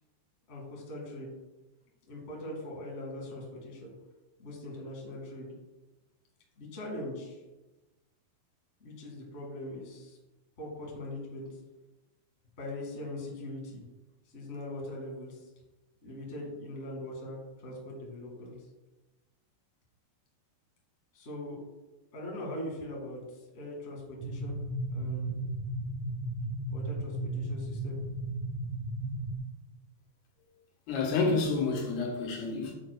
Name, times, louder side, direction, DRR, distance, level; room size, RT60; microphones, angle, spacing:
voice 1, 0.5-1.3 2.1-3.9 4.4-5.5 6.6-7.4 8.8-10.2 10.6-11.5 12.6-13.8 14.3-15.5 16.0-18.5 21.1-21.6 22.1-24.6 24.9-25.3 26.7-27.9, left 1 dB, 30° left, -2 dB, 1.5 m, -41 dB
sound 1, 24.2-29.4, right 1 dB, 80° right, 1.9 m, -35 dB
voice 2, 30.9-32.7, left 4 dB, 90° left, 0 dB, 3.2 m, -29 dB
8.8 x 7.5 x 2.3 m, 1.1 s
omnidirectional pair, 4.4 m